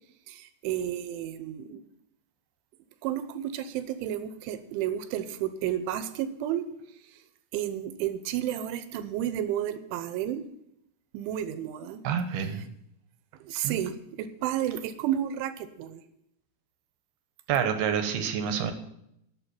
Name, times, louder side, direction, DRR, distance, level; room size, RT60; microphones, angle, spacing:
voice 1, 0.3-1.8 3.0-6.6 7.5-10.4 11.1-12.0 12.4-12.5 13.5-13.9 14.2-16.0, right 11 dB, 85° right, 12 dB, 3.3 m, -31 dB
voice 2, 12.0-12.6 13.6-13.9 17.5-18.7, right 7 dB, 70° right, 8 dB, 2.8 m, -28 dB
11.5 x 7.4 x 9.0 m, 0.76 s
omnidirectional pair, 5.5 m